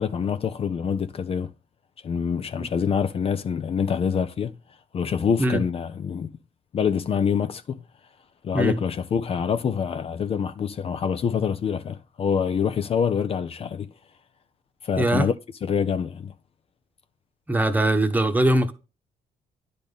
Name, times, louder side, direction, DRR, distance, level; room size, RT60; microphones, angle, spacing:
voice 1, 0.0-1.5 2.0-4.6 4.9-6.3 6.7-7.8 8.4-13.9 14.8-15.3 15.6-16.3, left 7 dB, 45° left, 0.5 m, -25 dB
voice 2, 15.0-15.3 17.5-18.7, right 1 dB, 10° right, 1.0 m, -21 dB
10.0 x 3.9 x 3.5 m
cardioid pair, 100°, 14 cm